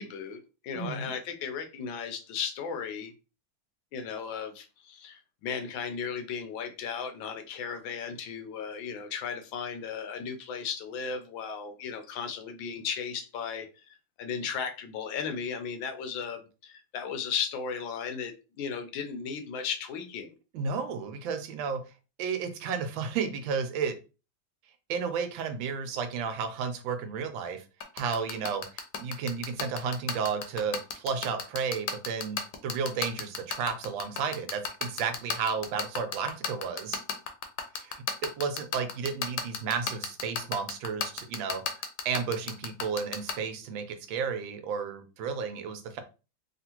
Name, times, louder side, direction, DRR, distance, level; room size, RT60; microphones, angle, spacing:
voice 1, 0.0-3.1 3.9-13.8 14.2-20.3, left 6 dB, 90° left, 7 dB, 1.4 m, -35 dB
voice 2, 0.7-1.1 20.5-21.8 22.2-24.0 24.9-27.6 27.9-28.6 29.0-37.0 37.8-41.6 42.0-46.0, right 6 dB, 90° right, 8 dB, 1.4 m, -32 dB
sound 1, 27.8-43.3, left 7 dB, 70° left, 1.1 m, -31 dB
3.5 x 2.4 x 2.8 m, 0.32 s
omnidirectional pair, 2.1 m